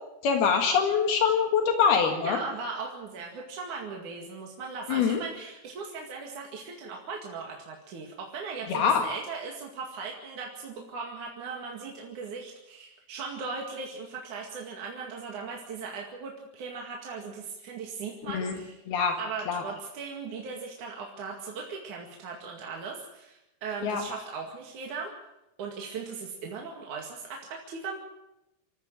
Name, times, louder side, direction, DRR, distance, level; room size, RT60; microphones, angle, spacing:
voice 1, 0.2-2.4 4.9-5.2 8.7-9.1 18.3-18.5 18.9-19.2 19.5-19.6 23.8-24.0, left 6 dB, 75° left, 4 dB, 3.8 m, -24 dB
voice 2, 2.2-18.8 19.2-25.1 25.6-28.0, right 4 dB, 55° right, 0 dB, 3.3 m, -38 dB
27.0 x 14.0 x 7.6 m, 0.91 s
omnidirectional pair, 4.5 m